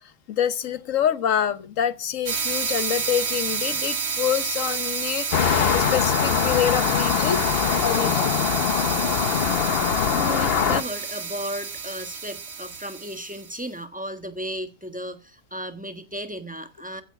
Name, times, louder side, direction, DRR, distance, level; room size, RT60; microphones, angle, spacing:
voice 1, 0.3-7.4 7.8-8.3, left 9 dB, 65° left, 1.4 m, -26 dB
sound 1, 2.3-13.5, right 5 dB, 50° right, 1.4 m, -29 dB
sound 2, 5.3-10.8, left 8 dB, 50° left, 0.9 m, -22 dB
voice 2, 10.0-17.0, equal, 5° right, 1.3 m, -34 dB
15.0 x 8.2 x 5.9 m
omnidirectional pair, 1.5 m